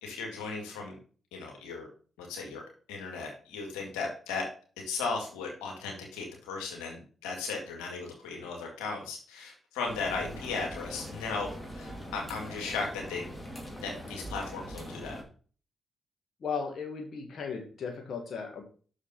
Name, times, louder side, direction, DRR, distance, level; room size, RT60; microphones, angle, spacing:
voice 1, 0.0-1.0 1.3-1.9 2.2-2.6 2.9-4.4 4.9-13.2 13.8-15.2, left 4 dB, 85° left, 0 dB, 2.0 m, -36 dB
sound 1, 9.9-15.2, equal, 20° left, 2.7 m, -42 dB
voice 2, 16.4-18.6, left 5 dB, 60° left, 1 dB, 1.6 m, -36 dB
6.5 x 4.9 x 5.7 m, 0.40 s
hypercardioid pair, 40°, 0 cm